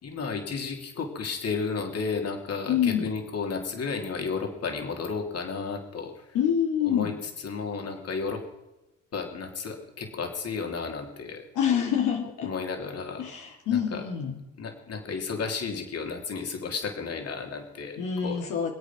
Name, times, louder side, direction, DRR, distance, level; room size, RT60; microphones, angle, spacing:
voice 1, 0.0-6.3 6.9-7.1 7.4-8.4 9.1-11.5 12.4-13.3 13.7-14.0 14.6-18.0 18.2-18.4, left 5 dB, 55° left, 3 dB, 3.3 m, -33 dB
voice 2, 2.7-3.1 6.3-7.2 11.5-12.5 13.2-14.4 18.0-18.7, left 8 dB, 85° left, 1 dB, 2.5 m, -26 dB
24.5 x 8.5 x 6.1 m, 0.98 s
cardioid pair, 90°, 30 cm